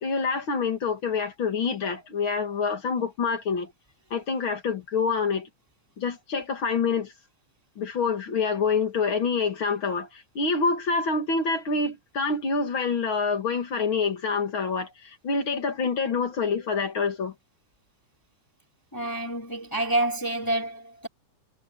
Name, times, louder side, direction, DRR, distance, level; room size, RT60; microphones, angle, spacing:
voice 1, 0.0-3.7 4.1-5.5 6.0-7.1 7.8-17.3, left 5 dB, 45° left, 2.5 m, -26 dB
voice 2, 18.9-21.1, right 1 dB, 5° left, 3.4 m, -28 dB
omnidirectional pair, 3.6 m